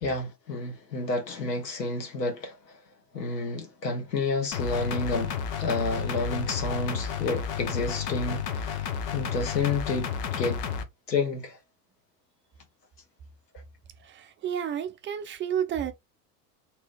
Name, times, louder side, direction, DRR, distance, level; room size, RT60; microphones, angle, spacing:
voice 1, 0.0-2.6 3.1-10.6 11.1-11.6, left 3 dB, 80° left, 1.3 m, -30 dB
sound 1, 4.5-10.8, left 7 dB, 55° left, 0.9 m, -32 dB
voice 2, 14.0-15.9, right 9 dB, 25° right, 0.6 m, -31 dB
3.0 x 2.7 x 3.3 m
figure-of-eight pair, 75°, 48 cm